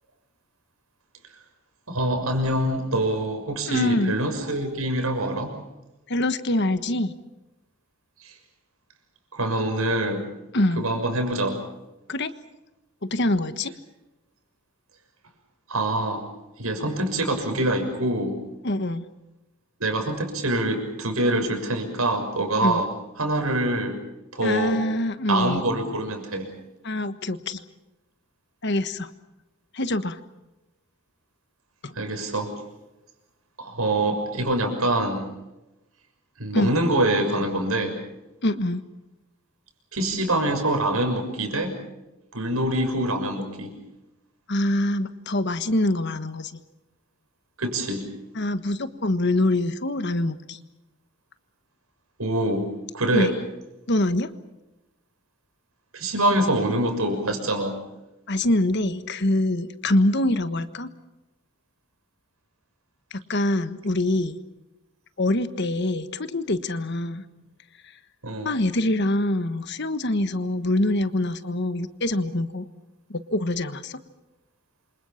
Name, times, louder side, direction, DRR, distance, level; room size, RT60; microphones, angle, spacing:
voice 1, 1.9-5.5 8.2-8.3 9.3-10.3 10.8-11.6 15.7-16.2 16.6-18.4 19.8-22.9 23.2-24.0 24.3-24.8 25.3-26.5 31.9-32.5 33.6-35.3 36.4-38.0 39.9-41.7 42.3-43.7 47.6-48.1 52.2-52.7 52.9-53.3 55.9-57.8 68.2-68.5, right 1 dB, 85° right, 5 dB, 6.5 m, -25 dB
voice 2, 3.7-4.1 6.1-7.1 10.5-10.8 12.1-12.3 13.0-13.7 18.6-19.1 22.6-22.8 24.4-25.6 26.8-27.6 28.6-29.1 29.7-30.2 31.8-32.0 36.5-36.7 38.4-38.9 44.5-46.5 48.3-50.6 53.1-53.3 53.9-54.3 58.3-60.9 63.1-64.4 65.2-67.2 68.4-72.7 73.1-74.0, left 1 dB, 50° left, 11 dB, 1.4 m, -24 dB
28.0 x 26.0 x 5.9 m, 0.98 s
head